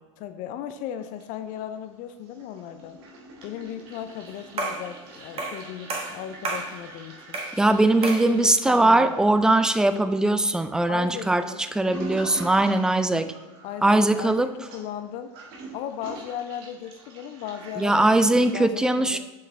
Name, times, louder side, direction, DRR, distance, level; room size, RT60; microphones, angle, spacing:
voice 1, 0.2-3.0 3.4-7.4 8.0-9.3 10.9-11.6 13.6-15.3 15.7-19.2, left 10 dB, 55° left, 9 dB, 0.5 m, -36 dB
Toilet flush, 1.0-1.8 2.1-18.6, right 3 dB, 65° right, 1.6 m, -45 dB
sound 1, 4.6-4.9 5.4-5.6 5.9-6.7 7.3-7.6 8.0-8.3, right 3 dB, 35° right, 1.5 m, -30 dB
voice 2, 7.6-11.4 11.7-13.3 13.8-14.5 17.8-19.2, right 2 dB, 5° right, 11 dB, 0.3 m, -20 dB
6.9 x 5.0 x 3.4 m, 1.2 s
hypercardioid pair, 100°, 16 cm